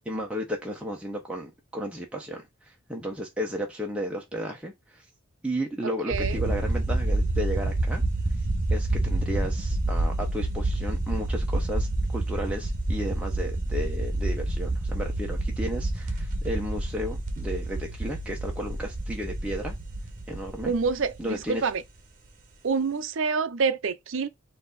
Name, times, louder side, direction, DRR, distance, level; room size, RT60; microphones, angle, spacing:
voice 1, 0.0-2.4 2.9-5.0 5.4-8.0 8.7-11.9 12.1-19.7 20.3-20.7 21.2-21.6, equal, 5° right, 1.0 m, -33 dB
sound 1, 6.1-21.7, right 2 dB, 40° right, 1.2 m, -28 dB
voice 2, 6.1-6.4 20.7-21.8 22.6-24.3, right 5 dB, 75° right, 0.5 m, -27 dB
4.6 x 2.8 x 4.0 m
head